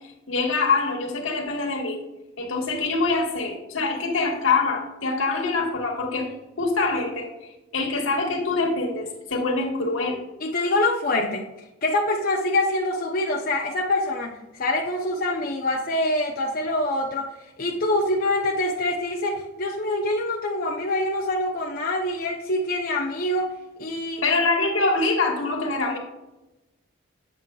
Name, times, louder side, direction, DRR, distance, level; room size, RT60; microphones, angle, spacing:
voice 1, 0.3-2.0 2.4-10.2 24.2-26.0, left 3 dB, 80° left, 1 dB, 1.5 m, -24 dB
voice 2, 10.4-11.5 11.8-17.3 17.6-23.5 23.8-24.2, left 1 dB, 45° left, 0 dB, 0.6 m, -25 dB
8.0 x 7.4 x 2.3 m, 1.0 s
head